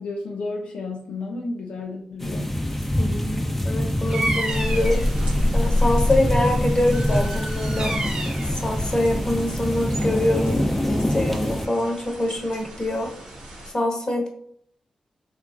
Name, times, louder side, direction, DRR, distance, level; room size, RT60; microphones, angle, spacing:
voice 1, 0.0-2.6, left 3 dB, 80° left, 0 dB, 0.4 m, -32 dB
sound 1, 2.2-11.7, left 1 dB, 10° left, 0.5 m, -25 dB
voice 2, 3.0-7.9 8.5-13.1 13.7-14.3, left 1 dB, 35° left, 1 dB, 0.9 m, -25 dB
Bird vocalization bird call bird song, 4.1-5.0 6.9-8.5, right 2 dB, 50° right, 0.7 m, -30 dB
sound 2, 4.5-13.7, left 1 dB, 80° right, 0.9 m, -28 dB
2.9 x 2.3 x 2.5 m, 0.65 s
supercardioid pair, 40°, 2 cm